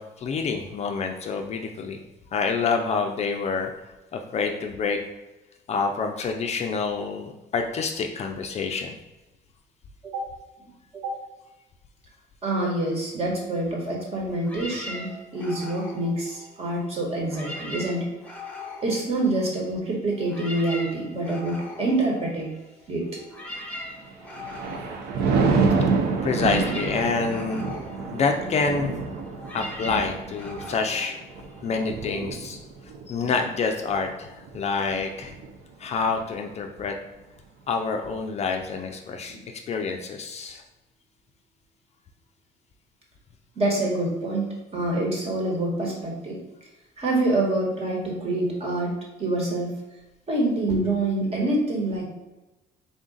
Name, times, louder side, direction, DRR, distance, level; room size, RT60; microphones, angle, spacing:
voice 1, 0.0-2.0 2.3-3.7 4.1-5.0 5.7-9.0 26.2-27.7 28.1-29.0 29.5-31.1 31.6-32.6 33.1-35.3 35.8-37.0 37.7-39.4 39.7-40.6, left 4 dB, 40° left, 4 dB, 0.4 m, -27 dB
voice 2, 12.4-18.1 18.8-22.5 22.9-23.2 39.3-39.4 43.5-46.4 47.0-48.9 49.2-49.7 50.3-52.0, right 2 dB, 35° right, -2 dB, 1.2 m, -26 dB
sound 1, 14.4-16.9 17.2-19.8 20.1-32.0, left 1 dB, 10° left, 0.8 m, -40 dB
Thunder, 24.1-35.6 36.0-36.3, right 4 dB, 75° right, 0.6 m, -28 dB
3.7 x 2.4 x 3.8 m, 1.0 s
cardioid pair, 110°, 17 cm